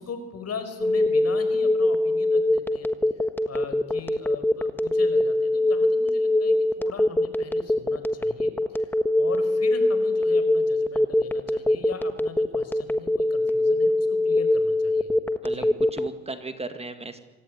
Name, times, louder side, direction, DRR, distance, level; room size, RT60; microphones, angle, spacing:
voice 1, 0.0-2.9 3.5-15.1 15.5-15.7, left 5 dB, 55° left, 9 dB, 5.0 m, -40 dB
Telephone, 0.8-16.1, left 1 dB, 5° left, 1.5 m, -22 dB
voice 2, 15.4-17.2, right 3 dB, 20° right, 9 dB, 2.1 m, -36 dB
26.0 x 18.5 x 9.6 m, 1.2 s
cardioid pair, 90°, 30 cm